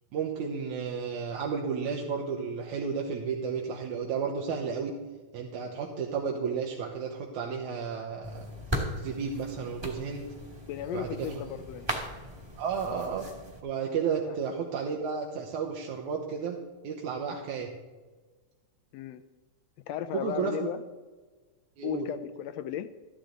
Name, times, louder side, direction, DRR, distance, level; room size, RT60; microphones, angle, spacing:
voice 1, 0.1-5.0 5.3-8.5 9.0-10.3 10.9-11.4 12.6-13.3 13.6-16.6 16.8-17.7 20.1-20.7 21.8-22.1, right 6 dB, 80° right, 0 dB, 2.5 m, -32 dB
sound 1, 8.2-13.6, equal, 15° right, 1.2 m, -38 dB
voice 2, 10.7-11.9 14.2-14.4 18.9-19.2 19.9-20.8 21.8-22.9, left 11 dB, 80° left, 11 dB, 1.6 m, -35 dB
13.5 x 11.5 x 3.9 m, 1.3 s
omnidirectional pair, 3.3 m